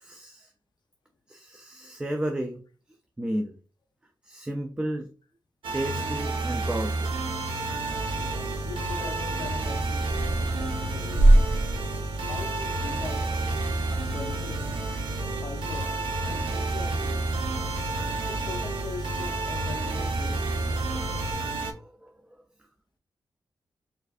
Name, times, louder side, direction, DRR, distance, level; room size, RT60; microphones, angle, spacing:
voice 1, 0.0-0.5 1.3-2.6 3.2-3.5 4.2-5.1 5.7-7.2 13.2-13.3 15.2-15.4 17.9-18.3 20.9-22.1, right 1 dB, 10° right, 0.3 m, -34 dB
sound 1, 5.6-21.7, right 3 dB, 85° right, 0.6 m, -31 dB
sound 2, 7.9-21.3, right 1 dB, 65° right, 0.9 m, -29 dB
voice 2, 8.2-11.3 12.3-13.3 14.1-14.7 15.4-16.0 16.2-17.4 18.2-20.8, left 4 dB, 60° left, 0.6 m, -41 dB
4.2 x 2.6 x 2.4 m
wide cardioid pair, 145°, 8 cm